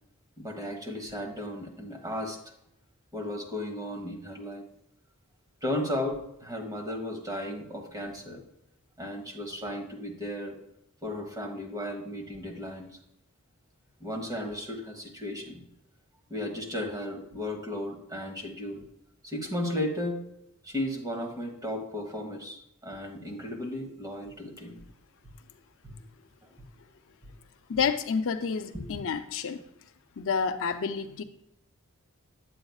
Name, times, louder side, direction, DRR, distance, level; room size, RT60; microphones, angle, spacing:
voice 1, 0.4-2.4 3.1-4.6 5.6-8.4 9.0-10.6 11.0-13.0 14.0-15.6 16.3-18.8 19.2-20.2 20.6-24.8 25.8-26.0 27.2-27.3 28.7-28.9, left 1 dB, 15° right, 3 dB, 1.4 m, -35 dB
voice 2, 27.7-29.6 30.2-31.2, left 6 dB, 65° left, 8 dB, 0.5 m, -29 dB
9.3 x 7.8 x 2.3 m, 0.78 s
head